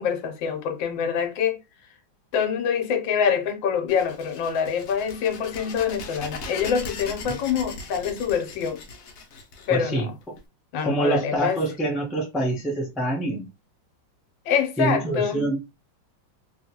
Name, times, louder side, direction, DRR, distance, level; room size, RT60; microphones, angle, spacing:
voice 1, 0.0-1.6 2.3-8.8 9.7-10.1 10.7-11.6 14.5-15.5, left 7 dB, 80° left, 1.4 m, -25 dB
sound 1, 3.9-10.4, left 3 dB, 60° left, 0.9 m, -39 dB
voice 2, 9.7-10.1 10.8-13.5 14.8-15.6, right 1 dB, ahead, 0.4 m, -25 dB
3.0 x 2.8 x 2.8 m
omnidirectional pair, 2.1 m